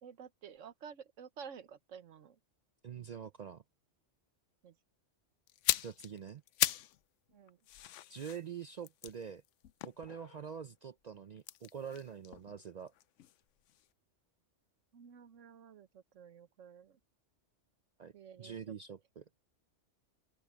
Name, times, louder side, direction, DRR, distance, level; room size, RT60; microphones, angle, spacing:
voice 1, 0.0-2.4 4.6-4.8 7.3-7.6 14.9-17.0 18.1-18.7, right 7 dB, 85° right, 1.3 m, -52 dB
voice 2, 2.8-3.6 5.8-6.4 8.1-9.4 9.8-12.9 18.0-18.1 18.4-19.2, right 7 dB, 60° right, 0.4 m, -45 dB
sound 1, 5.5-7.0 7.3-10.6 11.4-13.4 13.7-13.9, left 13 dB, 80° left, 0.9 m, -38 dB
open air
omnidirectional pair, 1.3 m